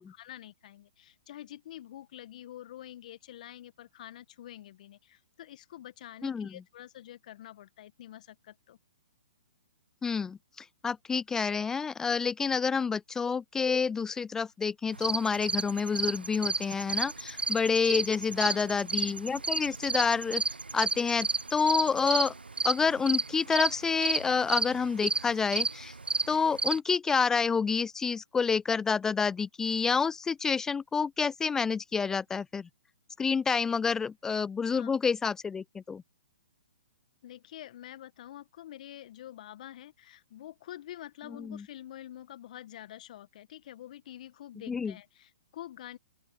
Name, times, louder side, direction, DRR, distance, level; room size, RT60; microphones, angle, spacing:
voice 1, 0.0-8.8 18.4-18.7 34.7-34.9 37.2-46.0, left 12 dB, 50° left, 1.7 m, -47 dB
voice 2, 10.0-20.4 20.7-22.3 22.6-25.9 26.3-32.7 33.2-36.0 41.4-41.6 44.7-44.9, left 5 dB, 10° left, 0.3 m, -28 dB
sound 1, 14.9-26.8, right 3 dB, 85° right, 0.6 m, -32 dB
open air
figure-of-eight pair, 125°, 5 cm